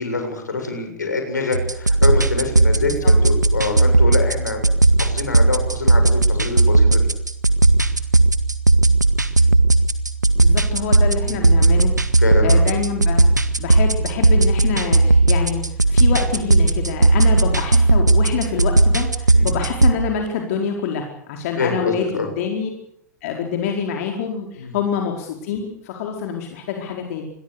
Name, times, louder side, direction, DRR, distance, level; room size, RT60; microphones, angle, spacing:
voice 1, 0.0-4.6 5.0-7.1 11.2-11.4 12.2-12.7 19.3-19.6 21.6-22.3 24.6-24.7, left 3 dB, 80° left, 5 dB, 7.3 m, -25 dB
sound 1, 1.5-19.9, right 2 dB, 90° right, 1.9 m, -16 dB
voice 2, 10.4-13.2 13.6-22.7 23.2-27.2, left 7 dB, 55° left, 2 dB, 4.7 m, -26 dB
28.0 x 22.0 x 6.9 m, 0.71 s
figure-of-eight pair, 85°, 9 cm